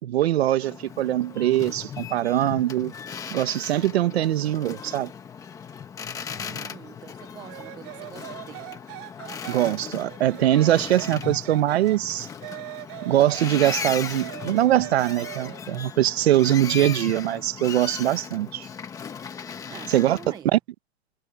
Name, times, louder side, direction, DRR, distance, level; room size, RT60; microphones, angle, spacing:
voice 1, 0.0-2.9 3.3-5.1 9.5-12.3 13.0-18.7 19.9-20.2 20.5-20.6, right 13 dB, 50° right, 1.6 m, -22 dB
Boat Water vehicle, 0.6-20.4, left 7 dB, 10° left, 1.2 m, -37 dB
voice 2, 6.3-8.7 19.7-20.5, right 9 dB, 10° right, 0.9 m, -45 dB
sound 1, 7.5-12.0 12.4-15.6, right 38 dB, 30° right, 5.8 m, -40 dB
hypercardioid pair, 165°, 39 cm